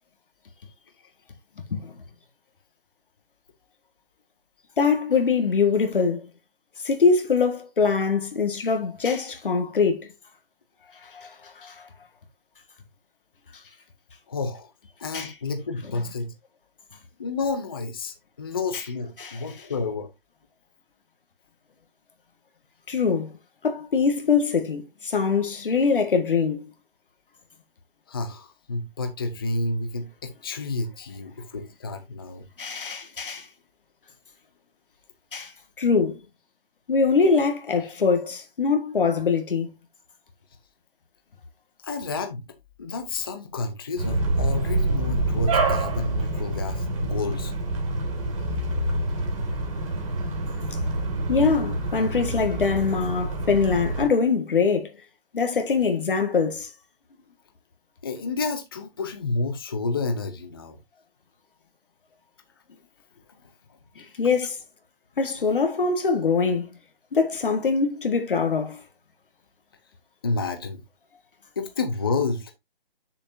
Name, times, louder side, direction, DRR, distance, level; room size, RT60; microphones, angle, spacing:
voice 1, 4.8-6.2 6.9-10.0 11.1-11.3 11.6-11.7 15.1-15.3 19.2-19.4 22.9-23.3 23.6-26.6 32.6-33.5 35.3-35.5 35.8-36.2 36.9-39.7 51.3-54.9 55.3-56.7 64.2-64.6 65.2-66.7 67.1-68.8, left 5 dB, 60° left, 1.8 m, -23 dB
voice 2, 14.3-14.7 15.0-16.3 17.2-20.1 28.1-32.5 41.8-42.4 42.8-47.5 58.0-60.8 70.2-70.8 71.6-72.5, left 3 dB, 25° left, 0.7 m, -30 dB
sound 1, 44.0-54.1, right 2 dB, 35° right, 2.6 m, -27 dB
7.6 x 6.9 x 2.7 m
hypercardioid pair, 175°, 29 cm